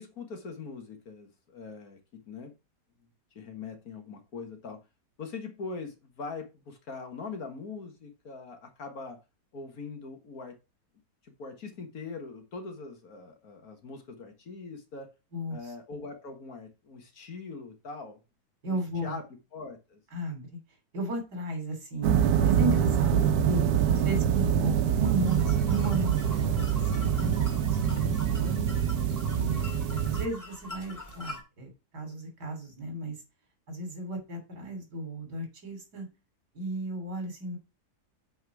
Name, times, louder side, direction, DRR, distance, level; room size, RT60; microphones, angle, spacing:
voice 1, 0.0-2.5 3.4-4.8 5.2-9.2 9.5-10.6 11.2-15.1 15.5-18.2 18.7-20.0 27.8-28.1, left 4 dB, 60° left, 1.9 m, -42 dB
voice 2, 18.6-19.2 20.1-20.4 20.9-28.6 29.3-29.7 30.1-33.2 33.7-36.1 36.5-37.6, right 1 dB, 65° right, 3.4 m, -35 dB
sound 1, 22.0-30.3, right 9 dB, 90° right, 1.3 m, -25 dB
sound 2, 25.3-31.4, left 1 dB, 10° left, 2.0 m, -44 dB
8.3 x 4.2 x 4.7 m
omnidirectional pair, 1.8 m